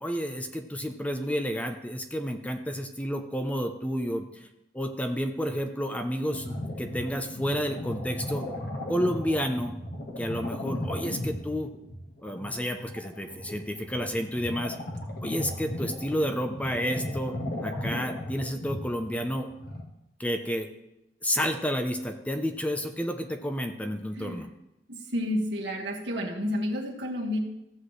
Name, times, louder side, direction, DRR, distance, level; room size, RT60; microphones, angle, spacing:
voice 1, 0.0-4.5 4.7-8.5 8.9-9.7 10.2-11.7 12.2-14.7 15.2-17.4 17.6-19.5 20.2-20.7 21.2-24.5, equal, 10° left, 5 dB, 0.6 m, -30 dB
sound 1, 6.3-19.8, left 1 dB, 55° left, 1.6 m, -36 dB
voice 2, 24.9-27.4, left 1 dB, 75° right, -1 dB, 1.9 m, -30 dB
14.5 x 8.1 x 3.3 m, 0.89 s
head